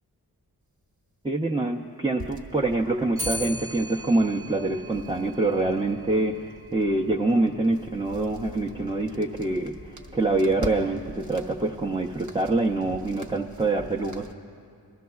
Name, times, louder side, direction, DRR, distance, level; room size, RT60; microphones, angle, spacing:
voice 1, 1.2-9.7 10.1-14.3, right 2 dB, 15° right, -1 dB, 0.5 m, -25 dB
sound 1, 2.2-14.3, left 1 dB, 50° right, 1.0 m, -44 dB
Clock, 3.2-12.5, equal, 80° right, 1.5 m, -42 dB
25.5 x 13.0 x 2.3 m, 2.3 s
wide cardioid pair, 50°, 38 cm